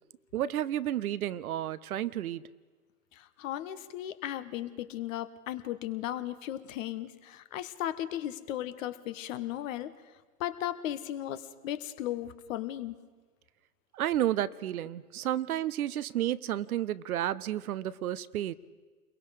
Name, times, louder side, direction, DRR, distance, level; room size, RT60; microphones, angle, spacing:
voice 1, 0.3-2.4 13.9-18.5, right 12 dB, 65° right, 17 dB, 0.8 m, -31 dB
voice 2, 3.1-9.9 10.4-12.9, left 12 dB, 55° left, 13 dB, 1.3 m, -36 dB
29.0 x 22.5 x 5.0 m, 1.4 s
figure-of-eight pair, 100°, 47 cm